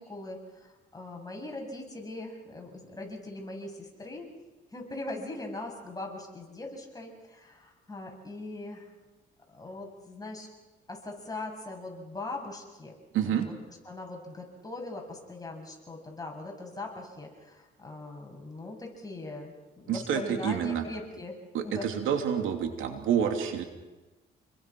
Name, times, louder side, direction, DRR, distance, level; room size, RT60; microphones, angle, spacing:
voice 1, 0.0-4.3 4.7-8.9 9.5-10.5 10.9-12.9 13.2-13.5 13.9-19.5 19.8-21.9, left 2 dB, 20° left, 1 dB, 7.5 m, -40 dB
voice 2, 13.1-13.5 19.9-20.8 21.5-23.6, right 8 dB, 80° right, 5 dB, 3.0 m, -28 dB
29.5 x 21.5 x 6.2 m, 1.2 s
cardioid pair, 90°, 20 cm